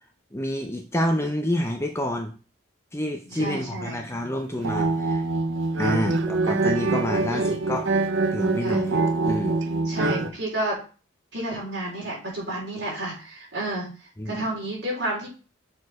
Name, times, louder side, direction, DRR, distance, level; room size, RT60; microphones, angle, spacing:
voice 1, 0.3-2.3 2.9-5.2 5.8-7.9 8.3-9.0 9.2-9.6 10.0-10.4 14.2-14.4, left 1 dB, 15° left, 4 dB, 0.6 m, -28 dB
voice 2, 3.3-4.0 5.8-6.0 7.3-7.6 8.6-8.9 9.8-10.8 11.3-13.9 14.3-15.3, right 1 dB, 55° right, -4 dB, 3.7 m, -31 dB
sound 1, 4.5-10.3, right 3 dB, 70° right, 0.7 m, -24 dB
6.5 x 4.6 x 4.8 m, 0.36 s
head